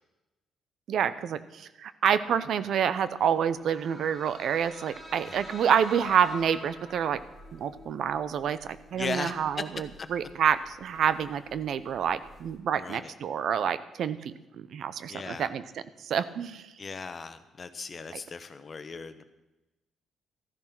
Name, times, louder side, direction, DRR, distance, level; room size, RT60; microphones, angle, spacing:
voice 1, 0.9-7.2 7.5-15.6 16.0-16.7, right 8 dB, 65° right, 14 dB, 0.7 m, -28 dB
sound 1, 3.1-12.6, left 1 dB, 25° right, 4.1 m, -48 dB
voice 2, 8.9-9.3 10.0-10.1 12.7-13.1 15.1-15.5 16.8-19.2, left 4 dB, 40° left, 11 dB, 1.1 m, -37 dB
14.0 x 10.5 x 6.0 m, 1.0 s
cardioid pair, 90°, 0 cm